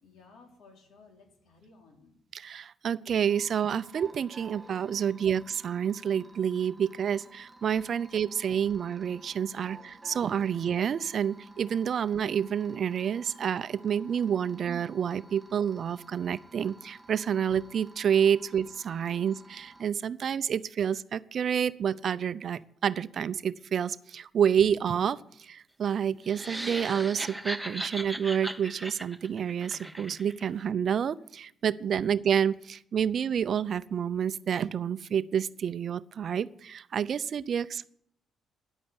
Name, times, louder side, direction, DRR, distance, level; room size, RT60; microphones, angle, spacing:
voice 1, 0.0-2.2 14.4-14.6 18.4-18.5, left 4 dB, 75° left, 2 dB, 3.8 m, -57 dB
voice 2, 2.3-37.8, right 8 dB, 55° right, 16 dB, 0.5 m, -29 dB
sound 1, 3.3-19.8, right 2 dB, 20° right, 3.2 m, -53 dB
sound 2, 26.2-30.5, right 1 dB, ahead, 1.2 m, -37 dB
10.5 x 8.6 x 9.8 m, 0.70 s
cardioid pair, 90°, 0 cm